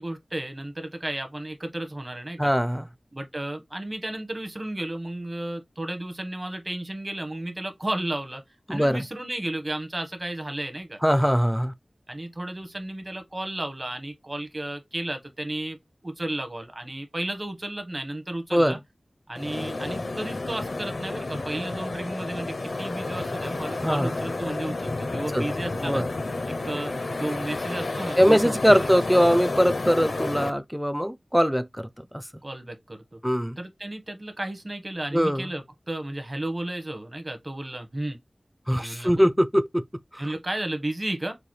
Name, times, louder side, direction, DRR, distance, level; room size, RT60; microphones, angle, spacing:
voice 1, 0.0-2.5 3.1-8.4 8.7-11.0 12.1-15.8 16.0-18.8 19.3-26.0 26.5-28.9 32.4-33.2 33.6-38.2 38.8-39.3 40.2-41.3, right 1 dB, 35° right, 1.3 m, -33 dB
voice 2, 2.4-2.9 8.7-9.0 11.0-11.7 18.5-18.8 23.8-24.2 25.3-25.5 25.8-26.0 28.2-32.2 33.2-33.6 35.1-35.5 38.7-39.8 40.1-40.2, equal, ahead, 0.5 m, -22 dB
sound 1, 19.3-30.5, left 2 dB, 80° left, 0.7 m, -31 dB
6.7 x 2.3 x 3.2 m
wide cardioid pair, 70°, 0 cm